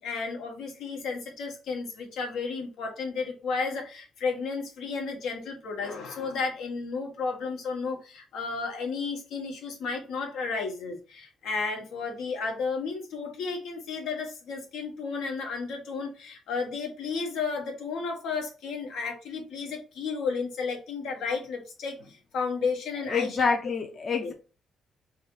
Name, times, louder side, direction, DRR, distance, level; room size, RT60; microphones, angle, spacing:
voice 1, 0.0-23.6 24.2-24.3, left 4 dB, 80° left, 2 dB, 1.3 m, -33 dB
voice 2, 23.1-24.3, left 5 dB, 45° left, 3 dB, 0.7 m, -27 dB
3.3 x 2.7 x 4.5 m, 0.34 s
cardioid pair, 90°, 0 cm